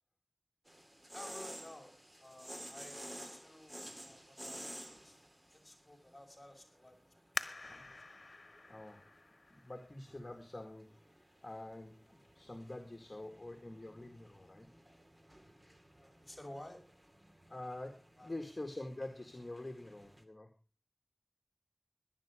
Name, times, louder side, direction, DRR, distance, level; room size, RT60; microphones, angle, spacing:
sound 1, 0.7-20.2, equal, 25° right, 2.4 m, -54 dB
voice 1, 1.1-1.9 2.2-5.2 5.5-7.1 7.4-7.5 10.3-10.4 16.2-16.8 18.2-18.3, left 1 dB, 20° left, 1 dB, 6.3 m, -53 dB
sound 2, 7.3-10.7 11.3-11.4 12.1-12.4 12.8-12.9, left 3 dB, 70° left, 1.2 m, -46 dB
voice 2, 8.7-9.1 9.5-10.9 11.1-14.7 17.5-20.5, left 2 dB, 40° left, 4 dB, 2.1 m, -46 dB
17.5 x 11.5 x 5.1 m, 0.34 s
wide cardioid pair, 55°, 0 cm